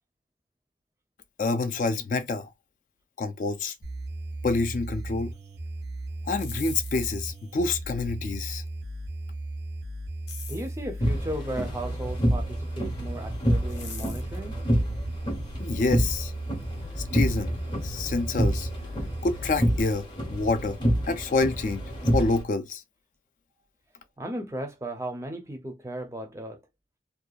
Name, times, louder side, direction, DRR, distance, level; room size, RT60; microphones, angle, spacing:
voice 1, 1.4-2.5 3.2-3.7 4.4-5.3 6.3-8.6 15.6-16.3 17.1-17.5 17.8-18.7 19.2-20.8 21.1-21.8 22.1-22.8, left 3 dB, 45° left, 0.3 m, -27 dB
sound 1, 3.8-19.8, right 1 dB, 85° right, 0.7 m, -36 dB
sound 2, 6.2-7.5 10.3-10.8 13.7-14.4, left 6 dB, 85° left, 0.7 m, -42 dB
voice 2, 10.5-14.6 24.2-26.6, right 1 dB, 15° right, 0.5 m, -36 dB
sound 3, 11.0-22.4, equal, 25° left, 0.7 m, -28 dB
2.7 x 2.2 x 2.3 m
head